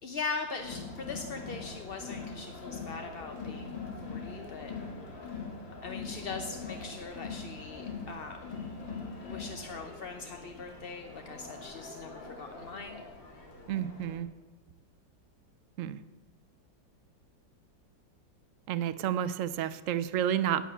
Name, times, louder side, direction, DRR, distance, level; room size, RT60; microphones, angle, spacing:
voice 1, 0.0-4.7 5.8-8.4 9.2-13.0, left 4 dB, 45° left, 5 dB, 0.7 m, -41 dB
Crowd, 0.6-14.2, left 4 dB, 80° left, 2.9 m, -42 dB
voice 2, 13.7-14.3 15.8-16.0 18.7-20.6, right 10 dB, 70° right, 14 dB, 0.7 m, -30 dB
10.5 x 9.1 x 8.2 m, 1.2 s
omnidirectional pair, 2.0 m